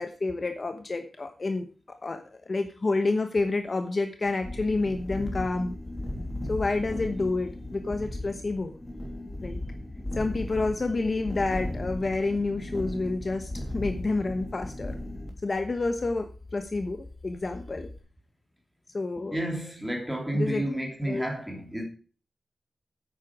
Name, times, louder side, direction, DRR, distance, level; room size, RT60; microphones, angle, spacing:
voice 1, 0.0-5.8 6.2-8.7 9.4-9.6 10.2-15.0 15.4-17.9 18.9-19.4 20.3-20.7 21.1-21.3, left 3 dB, 35° left, 1.1 m, -29 dB
sound 1, 4.4-18.0, left 1 dB, 15° left, 2.9 m, -37 dB
voice 2, 19.3-21.8, right 1 dB, 5° right, 3.4 m, -30 dB
10.0 x 8.6 x 4.8 m
wide cardioid pair, 135°, 0 cm